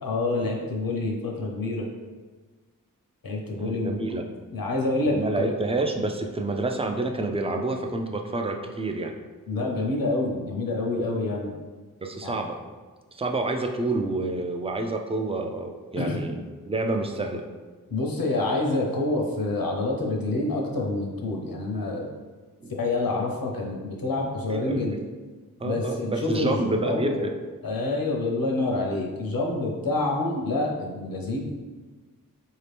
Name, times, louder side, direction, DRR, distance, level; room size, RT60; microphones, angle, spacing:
voice 1, 0.0-1.9 3.2-4.0 4.5-5.5 9.5-11.5 12.2-12.4 16.0-16.3 17.9-22.1 22.7-25.0 25.6-27.2 27.6-31.6, left 2 dB, 80° left, 0 dB, 0.8 m, -27 dB
voice 2, 3.6-4.3 5.1-9.1 12.0-12.6 13.1-16.4 16.7-17.4 22.6-22.7 24.5-25.0 25.6-27.3, right 2 dB, 15° right, 4 dB, 0.4 m, -28 dB
4.2 x 2.8 x 3.4 m, 1.3 s
wide cardioid pair, 60°, 34 cm